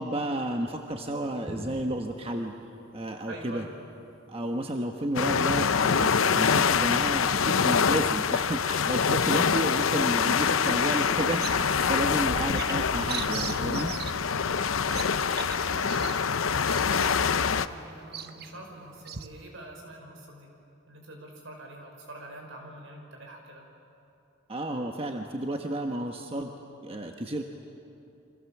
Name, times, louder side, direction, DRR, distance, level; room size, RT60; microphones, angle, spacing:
voice 1, 0.0-2.5 2.9-3.6 4.3-13.9 24.5-26.5 26.8-27.4, right 1 dB, 30° right, 3 dB, 1.2 m, -32 dB
sound 1, 1.2-4.2 4.5-4.7 5.2-6.0 6.3-10.5, equal, ahead, 6.4 m, -47 dB
voice 2, 3.3-3.7 12.2-12.5 14.8-20.5 20.9-23.7, right 1 dB, 70° right, 2 dB, 5.5 m, -45 dB
sound 2, 5.2-17.7, left 6 dB, 80° left, 0.7 m, -25 dB
Bird vocalization bird call bird song, 11.0-19.3, right 8 dB, 55° right, 1.0 m, -41 dB
29.5 x 25.0 x 7.3 m, 2.8 s
head